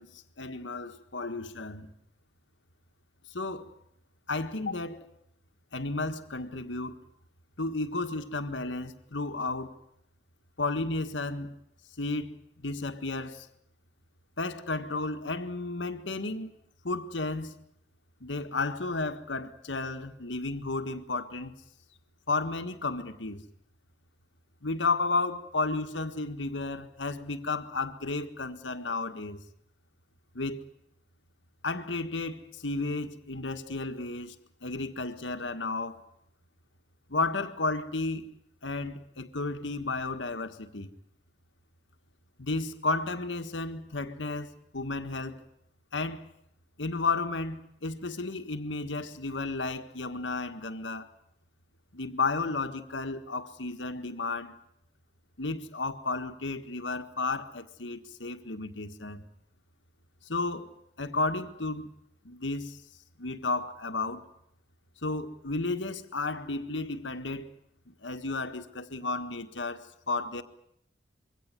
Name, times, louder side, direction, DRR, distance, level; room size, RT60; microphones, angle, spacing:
voice 1, 0.0-1.9 3.3-3.7 4.3-5.0 5.7-6.9 7.6-9.7 10.6-11.5 12.0-13.5 14.4-16.5 16.8-17.6 18.2-21.6 22.3-23.4 24.6-29.4 30.3-30.6 31.6-36.0 37.1-38.3 38.6-40.9 42.4-45.4 45.9-46.2 46.8-51.1 51.9-54.5 55.4-59.2 60.3-60.7 61.0-61.9 62.2-62.8 63.2-64.3 65.0-67.5 67.9-70.4, left 3 dB, 90° left, 1.7 m, -33 dB
23.5 x 17.0 x 9.8 m
head